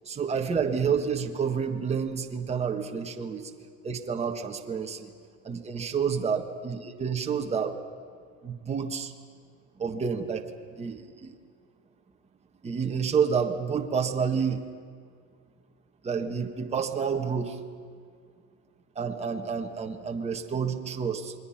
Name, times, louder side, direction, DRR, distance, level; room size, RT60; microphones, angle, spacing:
voice 1, 0.0-3.5 3.8-5.1 5.4-7.8 8.4-9.1 9.8-10.4 10.7-11.3 12.6-14.6 16.0-17.6 18.9-21.3, right 6 dB, 20° right, 3 dB, 1.4 m, -29 dB
28.0 x 21.5 x 5.8 m, 2.1 s
cardioid pair, 125°, 32 cm